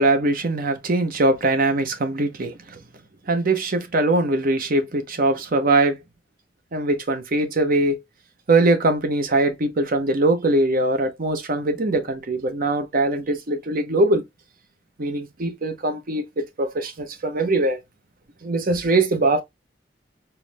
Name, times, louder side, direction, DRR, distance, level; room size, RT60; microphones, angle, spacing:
voice 1, 0.0-2.5 3.3-6.0 6.7-8.0 8.5-14.2 15.0-17.8 18.4-19.4, right 2 dB, 50° right, 0.8 m, -21 dB
4.5 x 2.1 x 3.3 m
head